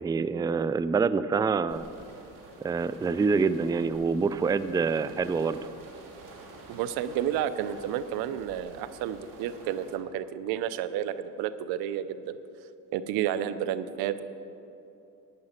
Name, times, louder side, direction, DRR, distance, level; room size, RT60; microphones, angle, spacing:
voice 1, 0.0-1.8 2.6-5.6, right 5 dB, 10° right, 15 dB, 0.3 m, -26 dB
sound 1, 1.7-10.0, right 3 dB, 60° right, 2.2 m, -49 dB
voice 2, 6.7-12.4 12.9-14.2, right 10 dB, 85° right, 14 dB, 0.6 m, -31 dB
11.0 x 9.8 x 5.7 m, 2.8 s
supercardioid pair, 70°, 36 cm